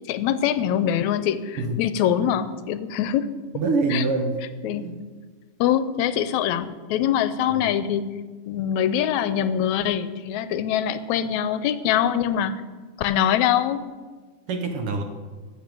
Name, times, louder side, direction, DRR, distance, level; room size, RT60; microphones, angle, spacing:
voice 1, 0.1-3.3 3.9-4.0 4.6-5.0 5.6-8.1 8.5-12.6 13.0-13.8, left 10 dB, 80° left, 13 dB, 1.9 m, -23 dB
voice 2, 3.5-4.5 4.8-5.0 7.6-7.7 14.5-15.0, right 3 dB, 65° right, 6 dB, 1.6 m, -25 dB
15.0 x 7.0 x 7.6 m, 1.4 s
omnidirectional pair, 3.3 m